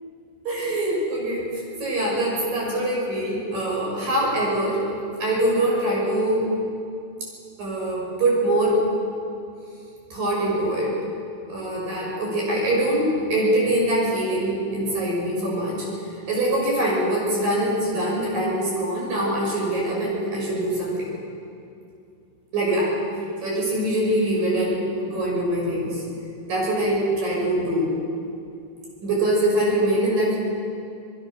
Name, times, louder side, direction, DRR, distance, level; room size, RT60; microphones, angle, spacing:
voice 1, 0.5-1.4 1.8-4.8 5.2-6.5 7.6-8.8 10.1-10.9 11.5-15.9 16.3-21.1 22.5-22.9 23.4-26.0 26.5-27.9 29.0-30.4, right 1 dB, 50° right, -3 dB, 7.7 m, -23 dB
27.0 x 19.5 x 6.4 m, 2.6 s
omnidirectional pair, 5.3 m